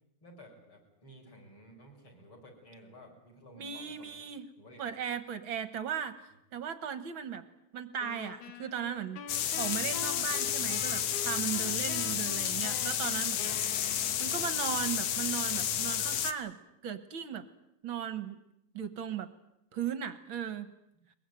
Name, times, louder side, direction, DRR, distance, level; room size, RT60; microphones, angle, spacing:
voice 1, 0.2-4.2 4.6-4.8 12.4-12.6, equal, 40° left, 0 dB, 6.7 m, -54 dB
voice 2, 3.6-4.4 4.8-7.5 7.7-9.2 9.6-16.6 16.8-17.5 17.8-18.4 18.7-19.3 19.7-20.7, right 8 dB, 55° right, 12 dB, 1.6 m, -37 dB
sound 1, 8.0-14.6, left 6 dB, 85° left, 3.0 m, -45 dB
sound 2, 9.3-16.3, left 9 dB, 65° left, 2.0 m, -31 dB
22.0 x 22.0 x 9.2 m, 0.79 s
omnidirectional pair, 3.4 m